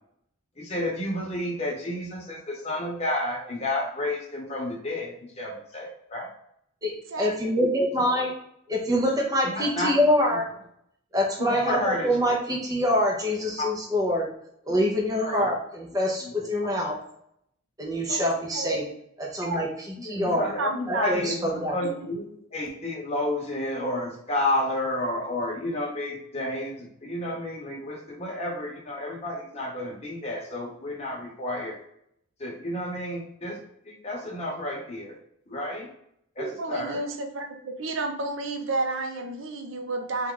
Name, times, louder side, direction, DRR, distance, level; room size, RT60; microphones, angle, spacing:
voice 1, 0.6-6.3 8.0-8.2 9.5-9.9 11.4-12.1 13.6-13.7 15.2-15.5 16.2-16.3 20.0-22.3 22.5-31.8 32.4-33.6 33.9-35.2 35.5-35.9 36.4-37.0, left 1 dB, 30° left, -1 dB, 1.0 m, -31 dB
voice 2, 7.2-8.3 8.7-10.5 11.1-14.3 14.6-16.9 17.8-18.8 19.2-19.7 20.0-20.5 20.9-21.8, equal, 20° right, -1 dB, 0.6 m, -25 dB
voice 3, 18.1-18.8 19.4-19.6 20.6-21.3 21.8-21.9 36.4-40.3, right 2 dB, 75° right, 4 dB, 0.6 m, -31 dB
4.2 x 2.4 x 3.7 m, 0.73 s
head